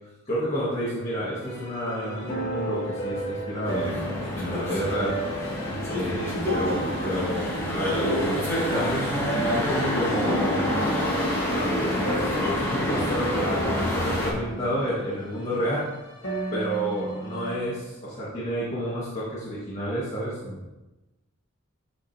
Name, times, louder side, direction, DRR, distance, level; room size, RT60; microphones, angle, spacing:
voice 1, 0.2-4.0 4.3-5.2 5.9-10.8 11.1-15.9 16.5-20.7, equal, 30° left, -9 dB, 1.7 m, -30 dB
sound 1, 1.4-17.6, right 2 dB, 60° left, 1.6 m, -34 dB
sound 2, 3.6-14.3, left 1 dB, 15° left, 2.1 m, -27 dB
9.7 x 4.9 x 2.8 m, 1.1 s
head